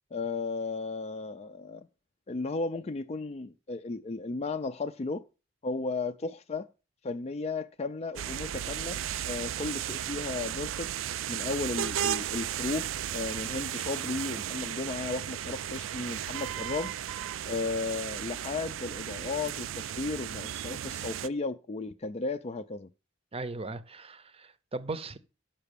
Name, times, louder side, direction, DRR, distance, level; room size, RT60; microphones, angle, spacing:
voice 1, 0.1-1.9 2.3-5.3 5.6-6.7 7.0-9.0 9.2-10.9 11.3-16.9 17.4-22.9, left 3 dB, 35° left, 0.4 m, -34 dB
sound 1, 8.2-21.3, right 10 dB, 85° right, 0.4 m, -35 dB
voice 2, 23.3-25.2, right 3 dB, 30° right, 0.7 m, -38 dB
7.5 x 5.8 x 6.8 m
head